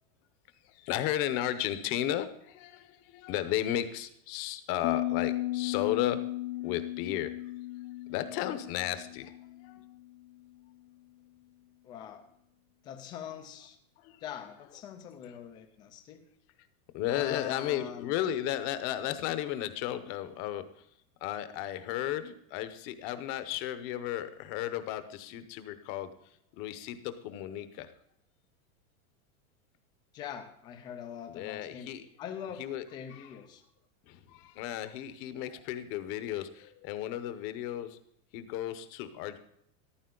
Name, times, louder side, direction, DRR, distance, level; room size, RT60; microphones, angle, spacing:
voice 1, 0.6-6.3 6.6-7.3 8.1-9.8 14.0-14.2 16.9-20.8 21.2-26.1 26.5-27.9 31.3-32.1 32.6-32.8 33.1-33.3 34.0-38.0 38.3-39.4, left 12 dB, 30° left, 11 dB, 0.8 m, -34 dB
Piano, 4.8-10.4, left 16 dB, 60° left, 0.6 m, -36 dB
voice 2, 11.8-12.2 12.8-13.8 14.2-16.2 17.1-18.1 30.1-31.9 32.2-32.7 32.9-33.6, left 8 dB, 10° left, 6 dB, 0.4 m, -43 dB
14.0 x 12.0 x 3.8 m, 0.72 s
supercardioid pair, 165°, 43 cm